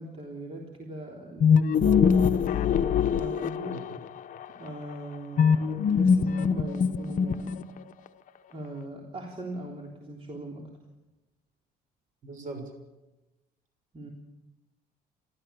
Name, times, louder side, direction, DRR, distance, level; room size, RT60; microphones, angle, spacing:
voice 1, 0.0-2.5 3.2-3.8 4.6-7.6 8.5-10.7 13.9-14.1, right 1 dB, 35° right, -1 dB, 3.6 m, -39 dB
sound 1, 1.4-4.0 5.4-7.8, left 6 dB, 50° left, 1.0 m, -22 dB
voice 2, 12.2-12.7, right 3 dB, 50° right, 5 dB, 6.6 m, -39 dB
30.0 x 13.5 x 7.0 m, 1.1 s
cardioid pair, 110°, 17 cm